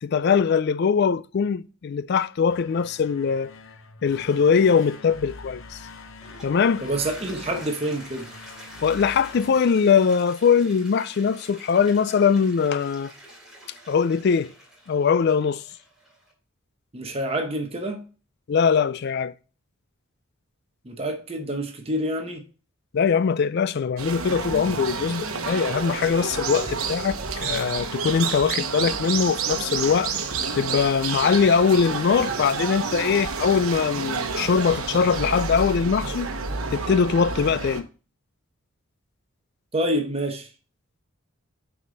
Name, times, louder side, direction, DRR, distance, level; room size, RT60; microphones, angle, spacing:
voice 1, 0.0-3.5 4.0-5.6 6.4-6.9 8.8-13.1 13.9-14.5 14.9-15.6 18.5-19.3 22.9-30.1 30.6-36.3 36.7-37.9, left 6 dB, 50° left, 0.3 m, -21 dB
sound 1, 2.4-10.3, left 3 dB, 70° left, 0.8 m, -45 dB
Toilet flush, 6.1-16.3, right 1 dB, ahead, 2.8 m, -46 dB
voice 2, 6.8-8.3 16.9-18.0 20.8-22.4 39.7-40.5, right 1 dB, 30° right, 0.9 m, -27 dB
sound 2, 24.0-37.8, right 5 dB, 90° right, 1.0 m, -29 dB
6.5 x 4.9 x 4.0 m
head